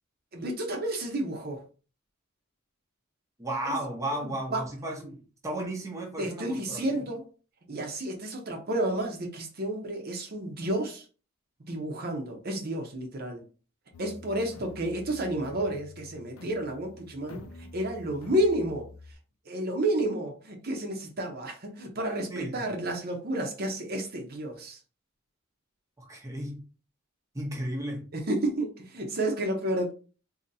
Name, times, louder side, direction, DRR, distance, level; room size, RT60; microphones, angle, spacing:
voice 1, 0.3-1.6 3.6-3.8 4.2-4.6 6.2-7.2 7.7-11.0 11.7-13.4 14.0-17.5 17.7-18.8 19.5-24.8 28.1-29.9, right 1 dB, 50° right, 0.8 m, -31 dB
voice 2, 3.4-6.8 22.3-22.8 26.0-26.6 27.3-28.0, right 1 dB, 15° right, 0.7 m, -34 dB
sound 1, 13.9-19.1, left 2 dB, 90° left, 0.6 m, -48 dB
4.0 x 2.8 x 2.7 m
head